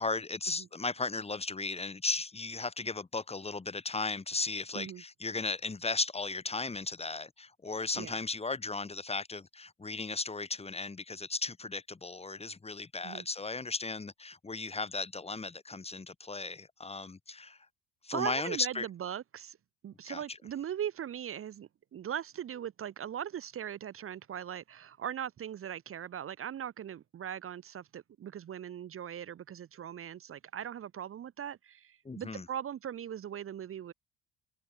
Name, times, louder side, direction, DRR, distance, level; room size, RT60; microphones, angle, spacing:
voice 1, 0.0-17.6 18.0-18.9 20.1-20.4 32.0-32.5, left 3 dB, 20° left, 1.7 m, -36 dB
voice 2, 18.1-19.6 19.8-33.9, right 9 dB, 40° right, 1.1 m, -39 dB
hypercardioid pair, 60°, 34 cm